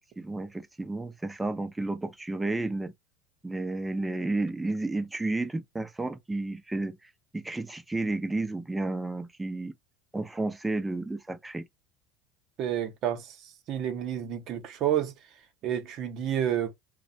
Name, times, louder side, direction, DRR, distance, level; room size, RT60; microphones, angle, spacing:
voice 1, 0.2-2.9 3.4-7.0 7.3-9.7 10.1-11.6, right 2 dB, 10° right, 0.5 m, -32 dB
voice 2, 12.6-15.1 15.6-16.7, right 10 dB, 55° right, 0.7 m, -30 dB
2.6 x 2.1 x 2.6 m
supercardioid pair, 100°, 0 cm